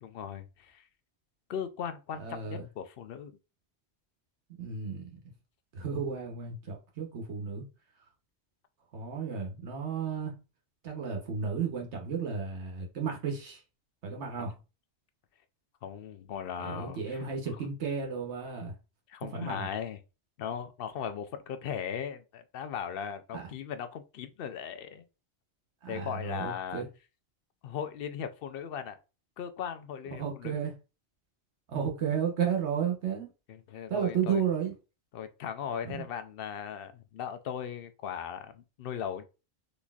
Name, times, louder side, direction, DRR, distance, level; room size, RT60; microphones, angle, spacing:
voice 1, 0.0-0.8 1.5-3.3 15.8-17.2 19.1-20.0 20.4-25.0 25.9-26.8 27.6-29.0 29.4-30.6 33.5-34.4 35.1-39.2, left 8 dB, 60° left, 0.7 m, -38 dB
voice 2, 2.2-2.7 4.6-5.2 5.7-7.7 8.9-10.4 10.8-13.6 14.0-14.6 16.6-18.7 19.3-19.7 23.3-23.5 25.8-26.9 30.2-30.7 31.7-33.3 33.9-34.7 35.8-36.1, right 6 dB, 75° right, 1.1 m, -33 dB
3.9 x 3.1 x 2.3 m
omnidirectional pair, 1.2 m